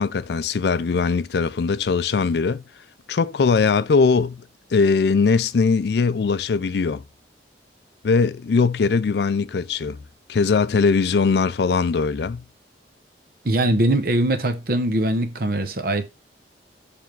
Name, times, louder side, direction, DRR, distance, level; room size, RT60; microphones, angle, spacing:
voice 1, 0.0-2.6 3.1-4.4 4.7-7.0 8.0-10.0 10.3-12.4, left 4 dB, 65° left, 0.4 m, -20 dB
voice 2, 13.4-16.1, right 1 dB, 55° right, 0.9 m, -21 dB
7.0 x 3.5 x 4.5 m
head